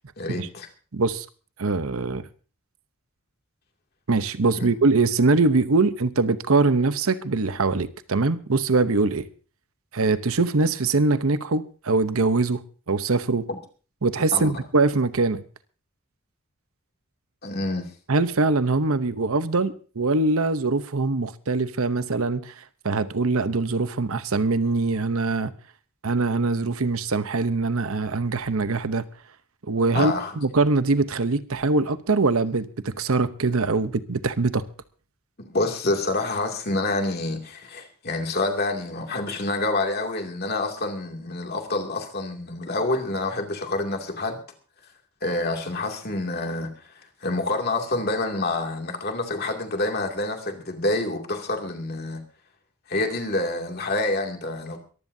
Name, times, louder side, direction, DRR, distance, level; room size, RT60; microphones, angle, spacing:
voice 1, 0.2-0.7 4.6-4.7 13.5-13.6 14.3-14.6 17.4-17.9 29.9-30.4 35.4-44.4 45.2-46.9 47.2-52.2 52.9-54.8, left 2 dB, 45° left, 2.6 m, -27 dB
voice 2, 0.9-1.2 1.6-2.3 4.1-9.3 9.9-12.6 12.9-13.5 14.0-15.4 18.1-25.5 26.0-29.0 29.7-34.7, right 3 dB, 70° right, 0.9 m, -23 dB
23.0 x 15.0 x 2.7 m
head